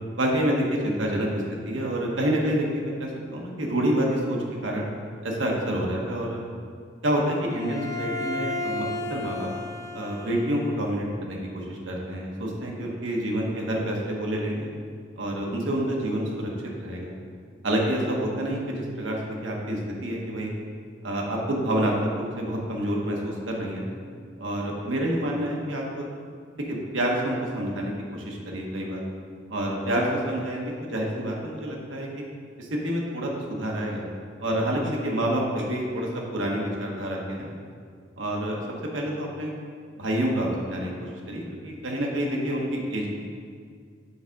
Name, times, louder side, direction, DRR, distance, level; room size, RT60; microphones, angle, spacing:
voice 1, 0.2-4.8 5.2-6.4 7.0-8.8 9.1-9.5 9.9-14.7 15.2-16.5 16.8-17.1 17.6-20.5 21.0-23.8 24.4-26.0 26.7-29.0 29.5-32.1 32.6-34.0 34.4-37.5 38.2-38.6 38.9-39.5 39.9-43.1, right 1 dB, 85° right, -2 dB, 1.1 m, -28 dB
Bowed string instrument, 7.5-10.9, left 2 dB, 15° left, 0.3 m, -33 dB
6.9 x 3.6 x 5.2 m, 2.1 s
head